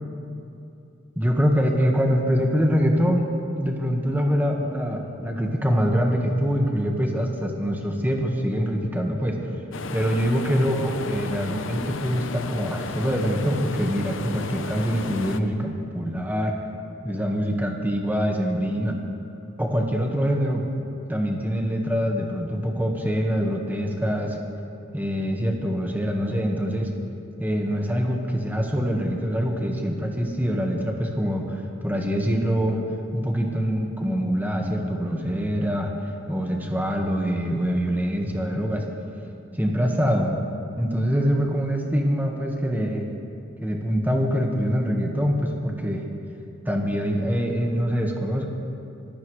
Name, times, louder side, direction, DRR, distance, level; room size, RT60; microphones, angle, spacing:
voice 1, 1.1-3.3 3.6-9.4 9.9-16.5 17.0-19.0 19.6-20.7 21.1-24.4 24.9-26.9 27.4-32.8 33.1-35.9 36.3-38.8 39.6-40.4 40.8-43.1 43.6-46.0 46.6-48.4, equal, 10° right, 1 dB, 1.5 m, -24 dB
sound 1, 9.7-15.4, left 3 dB, 65° left, 0.8 m, -34 dB
24.5 x 15.5 x 3.3 m, 2.7 s
head